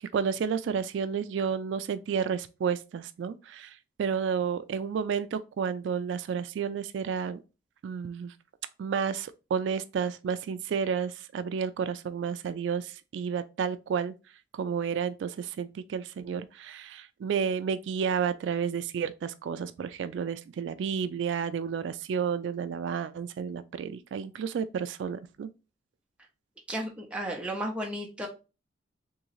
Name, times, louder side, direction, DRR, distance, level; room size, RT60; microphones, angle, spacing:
voice 1, 0.0-7.4 7.8-8.3 8.8-14.1 14.5-25.5, right 7 dB, 75° right, 0.3 m, -31 dB
voice 2, 26.7-28.3, right 1 dB, 5° right, 0.8 m, -33 dB
3.7 x 3.0 x 3.0 m
head